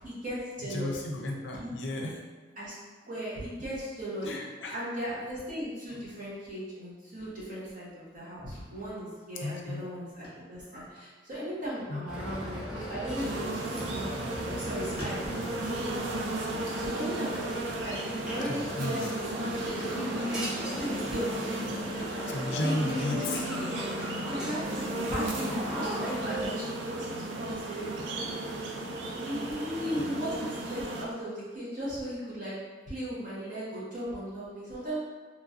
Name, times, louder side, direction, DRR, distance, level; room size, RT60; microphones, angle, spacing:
voice 1, 0.0-1.0 1.5-1.7 2.6-2.7 3.0-4.3 4.7-14.1 14.4-15.5 16.7-21.6 21.8-23.7 24.3-28.0 29.2-32.5 32.9-35.0, equal, 45° right, -8 dB, 1.0 m, -37 dB
voice 2, 0.7-2.2 4.2-4.8 9.4-9.8 11.9-12.1 18.8-19.1 22.3-23.5 30.0-30.1, left 1 dB, 75° left, 1 dB, 0.4 m, -33 dB
sound 1, 3.1-4.0 4.2-4.7 4.9-5.6 5.9-6.9 7.2-7.9 8.5-8.8 9.1-9.2 10.2-10.5 10.8-11.0 11.8-12.4 12.8-13.4 13.8-14.6 15.0-17.0 17.4-17.7 18.0-18.1 18.6-19.3 19.7-22.2, equal, 25° left, 1.0 m, -51 dB
sound 2, 12.1-26.5, equal, 5° right, 0.4 m, -38 dB
sound 3, 13.1-31.0, right 2 dB, 80° right, 0.4 m, -35 dB
3.0 x 2.6 x 2.4 m, 1.4 s
head